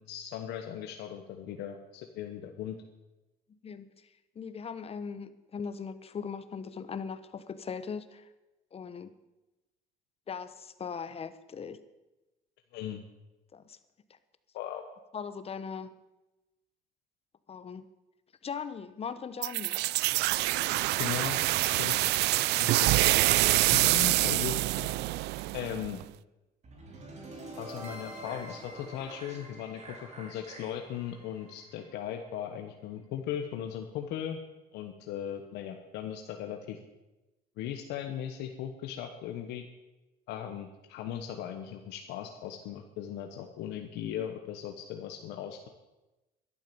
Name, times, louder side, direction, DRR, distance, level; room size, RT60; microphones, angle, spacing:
voice 1, 0.0-2.8 12.7-13.0 14.5-14.8 21.0-21.4 21.6-22.1 22.6-22.9 23.5-24.9 25.5-26.0 27.6-34.4 34.7-36.8 37.6-39.6 40.3-45.7, left 10 dB, 90° left, 4 dB, 1.2 m, -38 dB
voice 2, 3.5-3.9 4.3-8.3 8.7-9.1 10.3-11.8 13.5-13.8 15.1-15.9 17.5-17.8 18.4-19.8 22.4-22.6, left 6 dB, 35° left, 13 dB, 1.0 m, -39 dB
sound 1, 19.4-26.0, right 18 dB, 80° right, 0.4 m, -26 dB
sound 2, 26.6-32.7, right 1 dB, 40° right, 3.1 m, -46 dB
12.0 x 11.5 x 7.0 m, 1.0 s
cardioid pair, 110°, 17 cm